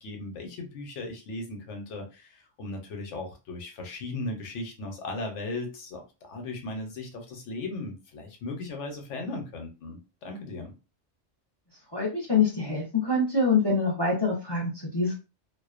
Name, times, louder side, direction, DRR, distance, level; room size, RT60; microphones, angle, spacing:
voice 1, 0.0-10.7, left 2 dB, 85° left, 2 dB, 1.0 m, -37 dB
voice 2, 11.9-15.1, left 4 dB, 30° left, -2 dB, 0.5 m, -25 dB
2.5 x 2.1 x 2.4 m, 0.30 s
omnidirectional pair, 1.2 m